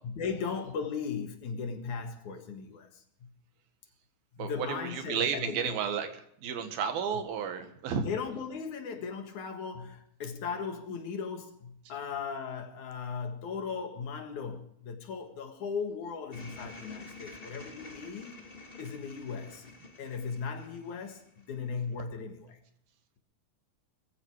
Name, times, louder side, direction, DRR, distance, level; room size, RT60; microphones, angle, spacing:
voice 1, 0.0-3.3 4.4-5.8 7.1-7.2 7.9-18.4 18.8-19.6 20.0-22.6, left 5 dB, 60° left, 2.8 m, -37 dB
voice 2, 4.4-6.1 6.4-8.0, right 7 dB, 80° right, 3.4 m, -32 dB
sound 1, 16.3-21.7, left 2 dB, 25° left, 1.3 m, -49 dB
20.0 x 14.5 x 4.8 m
omnidirectional pair, 4.2 m